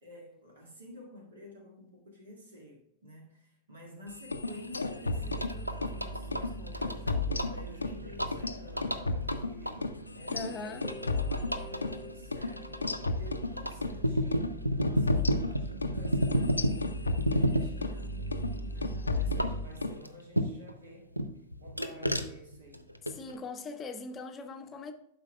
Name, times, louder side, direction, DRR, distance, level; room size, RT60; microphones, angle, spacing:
voice 1, 0.0-18.2 18.7-21.1 21.6-22.8, equal, 65° right, 1.9 m, -51 dB
sound 1, 4.2-6.0 6.3-6.5 6.8-8.0 8.3-12.0 12.3-12.5 12.8-14.0 14.3-14.5 14.8-18.0 18.3-18.6 18.8-20.0, left 3 dB, 80° left, 0.5 m, -34 dB
sound 2, 4.4-20.8 21.2-23.4, equal, 90° right, 0.5 m, -34 dB
sound 3, 5.2-10.4 10.8-19.6, right 1 dB, 30° right, 1.0 m, -42 dB
voice 2, 10.3-10.8 23.1-24.9, left 4 dB, 25° left, 0.7 m, -40 dB
11.5 x 5.1 x 2.2 m
figure-of-eight pair, 90°, 0 cm